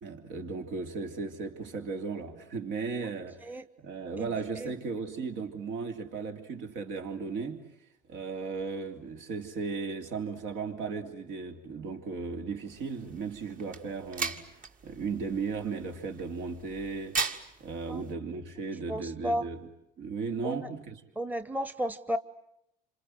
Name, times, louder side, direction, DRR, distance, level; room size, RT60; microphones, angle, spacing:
voice 1, 0.0-7.7 8.1-14.5 14.8-17.2 17.6-19.7 20.0-21.0, right 4 dB, 70° right, 3.2 m, -36 dB
sound 1, 12.7-18.1, right 4 dB, 45° right, 2.1 m, -39 dB
voice 2, 18.9-19.5 20.4-20.7 21.2-22.2, equal, 10° right, 1.1 m, -33 dB
28.0 x 26.5 x 7.9 m
supercardioid pair, 85°, 20 cm